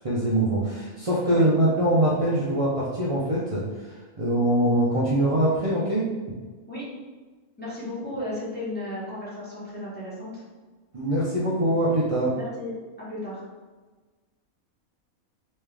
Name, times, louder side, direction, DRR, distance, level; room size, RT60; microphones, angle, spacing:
voice 1, 0.0-6.1 10.9-12.4, right 1 dB, 50° right, -6 dB, 0.4 m, -23 dB
voice 2, 7.6-10.4 12.3-12.8 13.1-13.4, left 1 dB, 5° left, -9 dB, 1.2 m, -34 dB
3.5 x 3.3 x 3.3 m, 1.3 s
omnidirectional pair, 1.5 m